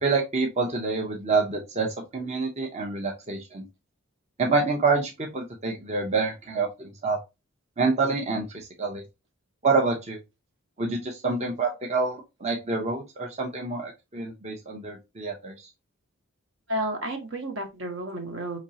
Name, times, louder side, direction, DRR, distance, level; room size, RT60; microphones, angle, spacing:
voice 1, 0.0-3.7 4.4-7.2 7.8-9.0 9.6-10.2 10.8-15.7, right 4 dB, 30° right, 0.7 m, -27 dB
voice 2, 16.7-18.6, right 1 dB, 65° right, 1.1 m, -31 dB
5.1 x 3.1 x 2.8 m
head